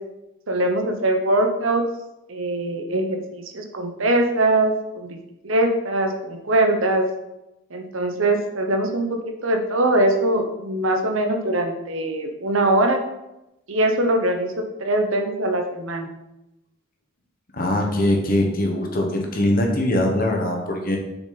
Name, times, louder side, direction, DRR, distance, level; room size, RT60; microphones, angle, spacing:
voice 1, 0.5-1.8 2.3-5.2 5.4-7.0 7.7-13.0 13.7-16.1, right 1 dB, 70° right, 4 dB, 1.0 m, -22 dB
voice 2, 17.5-21.0, left 1 dB, 40° left, 1 dB, 1.3 m, -22 dB
7.0 x 6.0 x 4.1 m, 0.94 s
head